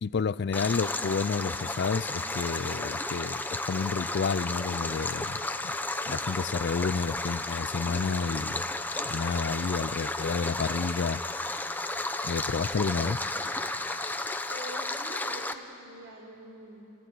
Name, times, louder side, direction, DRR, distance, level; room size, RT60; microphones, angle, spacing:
voice 1, 0.0-5.4 5.6-5.8 6.1-8.7 9.0-11.2 12.2-13.2, left 5 dB, 55° left, 18 dB, 0.4 m, -30 dB
Stream, 0.5-15.5, left 2 dB, 10° left, 0.7 m, -33 dB
voice 2, 14.5-16.9, equal, 65° right, 0 dB, 3.7 m, -46 dB
26.5 x 16.0 x 9.5 m, 2.9 s
head